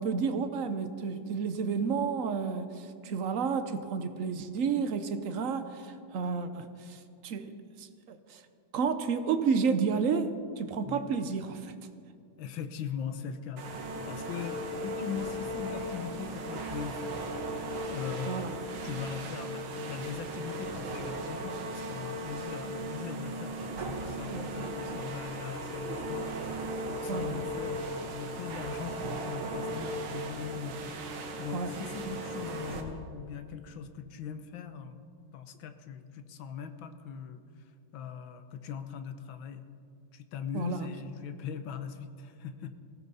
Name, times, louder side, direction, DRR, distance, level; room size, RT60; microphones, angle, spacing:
voice 1, 0.0-7.5 7.8-8.4 8.7-11.7 18.2-18.6 24.3-24.5 27.1-27.4 31.5-31.7 32.0-32.2 40.5-40.9, right 5 dB, 60° right, 9 dB, 0.9 m, -31 dB
voice 2, 12.4-17.3 17.9-26.3 26.9-31.0 31.4-35.0 35.3-39.6 40.1-42.7, left 7 dB, 75° left, 9 dB, 1.6 m, -40 dB
sound 1, 13.6-32.8, right 1 dB, 85° right, 2.1 m, -37 dB
19.0 x 15.5 x 4.1 m, 2.4 s
omnidirectional pair, 2.2 m